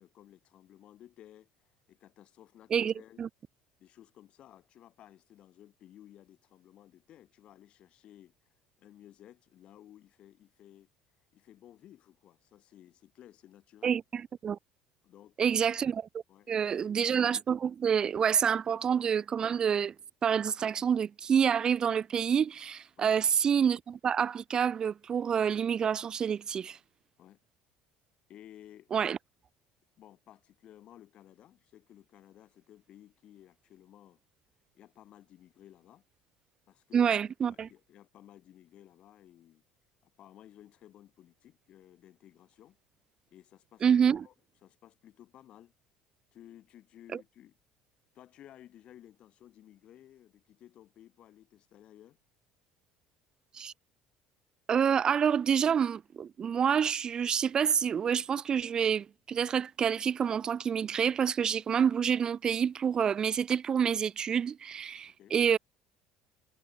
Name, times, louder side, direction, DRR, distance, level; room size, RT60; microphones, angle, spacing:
voice 1, 0.0-3.2 3.8-8.3 8.8-10.9 11.3-14.0 15.0-15.6 16.3-17.0 23.0-23.2 27.2-27.4 28.3-29.1 30.0-34.2 34.7-36.0 36.7-39.6 40.2-42.8 43.3-43.8 44.2-44.3 44.6-45.7 46.3-47.5 48.1-52.2 65.1-65.4, left 12 dB, 55° left, 6.3 m, -56 dB
voice 2, 2.7-3.3 13.8-14.6 15.4-16.0 16.5-19.9 20.2-26.8 28.9-29.2 36.9-37.7 43.8-44.3 53.5-53.7 54.7-65.6, right 7 dB, 35° right, 0.5 m, -28 dB
supercardioid pair, 95°, 2 cm